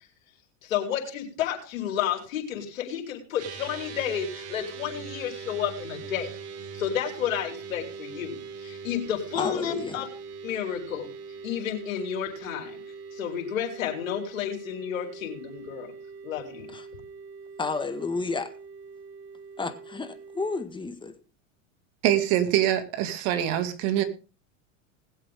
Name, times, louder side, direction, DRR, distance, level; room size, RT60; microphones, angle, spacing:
voice 1, 0.6-6.3 6.7-10.1 10.4-11.1 11.4-12.8 13.1-15.9 16.2-16.7, left 9 dB, 85° left, 0 dB, 4.3 m, -31 dB
sound 1, 3.4-20.7, right 5 dB, 40° right, 1.9 m, -42 dB
voice 2, 9.3-10.0 16.7-16.8 17.6-18.5 19.6-21.1, left 4 dB, 10° left, 7 dB, 1.7 m, -31 dB
voice 3, 22.0-24.0, right 11 dB, 55° right, 9 dB, 2.4 m, -24 dB
20.5 x 7.8 x 3.7 m, 0.35 s
supercardioid pair, 115°, 39 cm